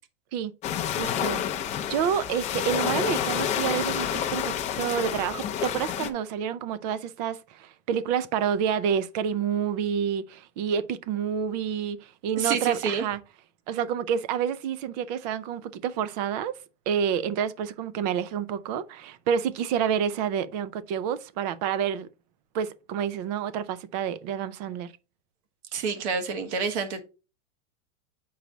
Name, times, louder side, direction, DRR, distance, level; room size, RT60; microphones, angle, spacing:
sound 1, 0.6-6.1, left 9 dB, 20° left, 0.5 m, -29 dB
voice 1, 1.0-1.4 1.9-13.2 13.7-16.5 16.9-22.1 22.5-24.9, right 8 dB, 35° right, 0.4 m, -28 dB
voice 2, 12.4-13.0 25.7-27.0, right 5 dB, 60° right, 1.6 m, -28 dB
8.0 x 4.7 x 3.9 m
supercardioid pair, 165°, 39 cm